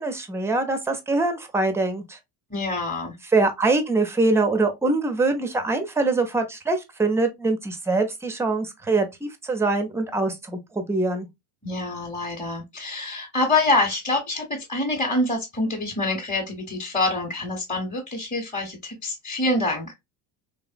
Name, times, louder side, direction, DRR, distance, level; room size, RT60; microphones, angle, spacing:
voice 1, 0.0-2.2 3.3-11.3, right 3 dB, 5° right, 0.4 m, -23 dB
voice 2, 2.5-3.2 11.6-19.9, left 2 dB, 15° left, 0.8 m, -26 dB
3.2 x 2.0 x 2.4 m
supercardioid pair, 95°, 48 cm